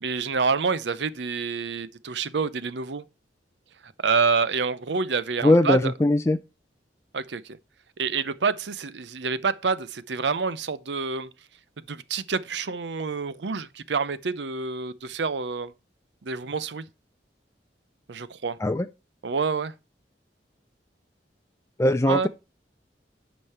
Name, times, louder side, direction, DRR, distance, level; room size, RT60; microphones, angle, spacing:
voice 1, 0.0-3.0 3.8-5.9 7.1-7.6 8.0-11.3 11.9-15.7 16.2-16.8 18.1-18.6 19.2-19.7 22.1-22.3, right 5 dB, 75° right, 0.7 m, -27 dB
voice 2, 5.4-6.4 18.6-18.9 21.8-22.3, left 1 dB, 15° left, 0.4 m, -20 dB
9.8 x 5.3 x 4.3 m
head